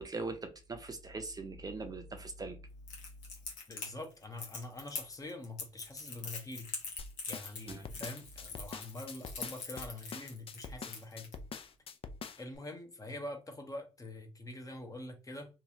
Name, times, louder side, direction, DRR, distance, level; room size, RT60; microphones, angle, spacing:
voice 1, 0.0-2.6 7.7-8.0, right 3 dB, 30° right, 0.6 m, -41 dB
Crackle, 2.9-11.3, left 4 dB, 75° left, 1.0 m, -43 dB
voice 2, 3.7-6.7 7.3-11.3 12.4-15.5, left 1 dB, 25° left, 0.9 m, -45 dB
sound 1, 7.0-12.6, left 5 dB, 45° left, 0.5 m, -45 dB
2.9 x 2.4 x 2.7 m
hypercardioid pair, 55°, 13 cm